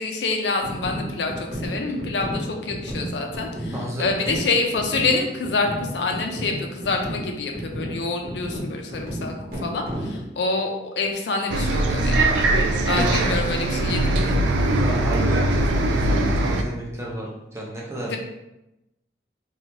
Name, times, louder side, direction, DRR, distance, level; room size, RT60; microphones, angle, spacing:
voice 1, 0.0-3.7 4.0-9.3 9.6-12.3 12.9-14.4 18.1-18.2, left 3 dB, 75° left, 3 dB, 0.4 m, -26 dB
sound 1, 0.6-10.3, equal, 55° right, 0.9 m, -33 dB
voice 2, 3.7-4.3 12.9-13.3 14.4-18.1, equal, 15° right, -4 dB, 0.5 m, -32 dB
Bus, 11.5-16.6, right 2 dB, 85° right, 0.3 m, -21 dB
2.8 x 2.3 x 2.9 m, 0.91 s
head